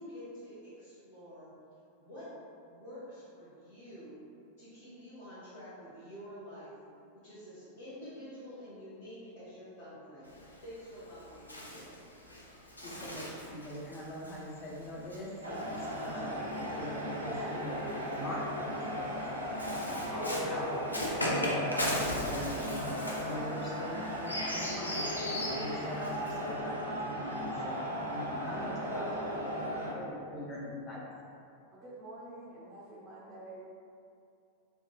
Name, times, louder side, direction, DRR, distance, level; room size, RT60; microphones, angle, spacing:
voice 1, 0.0-1.5 2.0-2.2 2.7-4.2 4.6-6.7 7.2-10.3 10.6-11.9, equal, 50° left, -15 dB, 1.4 m, -48 dB
Bird, 10.2-16.8 17.7-26.5, left 1 dB, 85° left, 0.4 m, -39 dB
voice 2, 12.8-17.8 18.1-19.6 19.8-20.7 21.2-22.7 23.2-26.7 27.0-31.0, left 1 dB, 30° left, -5 dB, 0.7 m, -42 dB
sound 1, 15.4-29.9, equal, 75° right, 0.5 m, -37 dB
voice 3, 31.7-33.6, right 2 dB, 25° right, -6 dB, 0.5 m, -48 dB
3.6 x 2.3 x 2.3 m, 2.5 s
figure-of-eight pair, 90°, 0 cm